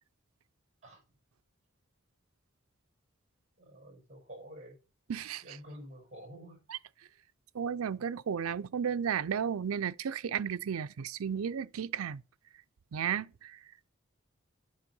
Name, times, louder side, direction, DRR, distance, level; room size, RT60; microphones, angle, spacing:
voice 1, 3.6-4.8 5.4-6.6, equal, 35° right, 5.2 m, -49 dB
voice 2, 5.1-5.4 6.7-6.8 7.5-12.2 12.9-13.6, right 7 dB, 90° right, 0.5 m, -33 dB
8.7 x 5.2 x 5.4 m
head